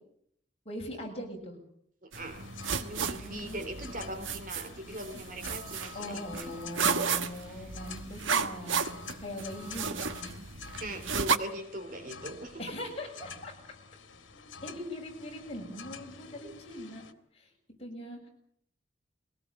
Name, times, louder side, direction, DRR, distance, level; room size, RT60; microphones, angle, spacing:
voice 1, 0.7-1.6 3.1-3.7 5.9-10.3 12.6-13.6 14.6-17.0 17.3-17.5 17.8-18.3, left 1 dB, 30° left, 0 dB, 7.2 m, -41 dB
voice 2, 2.0-2.5 2.7-6.6 7.5-7.7 10.8-12.6 16.4-16.6, right 1 dB, 45° right, 8 dB, 3.0 m, -41 dB
sound 1, 2.1-17.1, left 5 dB, 85° left, 2.1 m, -49 dB
sound 2, 2.1-11.4, right 6 dB, 90° right, 1.3 m, -33 dB
22.5 x 18.5 x 8.6 m, 0.70 s
head